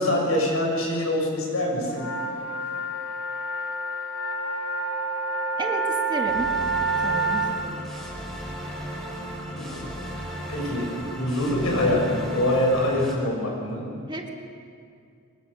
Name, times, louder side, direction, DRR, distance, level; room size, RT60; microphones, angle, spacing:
voice 1, 0.0-2.1 9.6-9.9 10.5-13.8, left 1 dB, 90° left, -1 dB, 7.2 m, -24 dB
sound 1, 1.9-7.5, right 3 dB, 65° left, 2.5 m, -28 dB
voice 2, 5.6-6.5 7.0-7.9 14.1-14.3, right 1 dB, 20° right, 2 dB, 2.0 m, -32 dB
sound 2, 6.3-13.1, equal, ahead, 5.4 m, -35 dB
24.5 x 22.5 x 7.0 m, 2.4 s
head